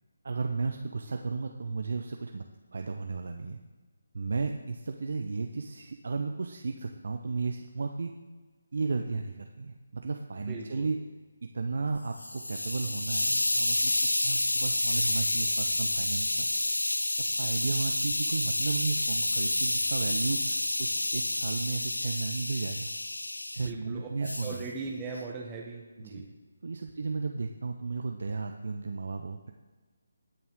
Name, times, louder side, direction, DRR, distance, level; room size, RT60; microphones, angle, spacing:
voice 1, 0.2-2.4 2.7-3.6 4.1-8.1 8.7-11.0 11.5-13.9 14.2-16.5 17.3-22.9 23.5-24.6 26.0-26.2 26.6-29.5, right 4 dB, 60° right, 5 dB, 0.8 m, -34 dB
voice 2, 10.4-10.9 23.6-24.1 24.4-26.3, right 4 dB, 15° right, -2 dB, 1.1 m, -39 dB
Hiss, 11.9-23.7 24.2-24.6, left 1 dB, 80° left, 0.4 m, -29 dB
20.5 x 6.9 x 3.7 m, 1.3 s
figure-of-eight pair, 150°, 0 cm